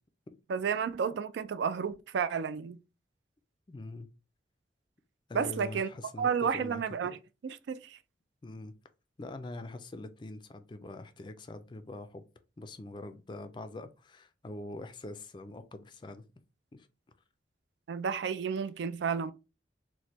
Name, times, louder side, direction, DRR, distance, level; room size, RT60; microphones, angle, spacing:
voice 1, 0.5-2.8 5.3-5.9 6.2-7.2 7.4-8.0 17.9-19.3, right 6 dB, 75° right, 0.3 m, -31 dB
voice 2, 3.7-4.1 5.3-7.2 8.4-8.7 9.2-12.2 12.6-16.2 16.7-16.9, left 2 dB, 25° left, 0.3 m, -44 dB
3.1 x 2.1 x 4.1 m
head